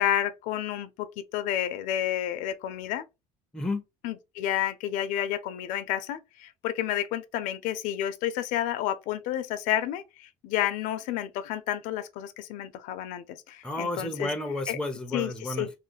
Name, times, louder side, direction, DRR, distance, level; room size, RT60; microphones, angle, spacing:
voice 1, 0.0-3.0 4.0-14.3 14.7-14.8 15.1-15.7, left 11 dB, 80° left, 0.5 m, -30 dB
voice 2, 13.6-15.7, left 2 dB, 5° left, 0.6 m, -31 dB
3.1 x 2.0 x 3.9 m
cardioid pair, 130°, 13 cm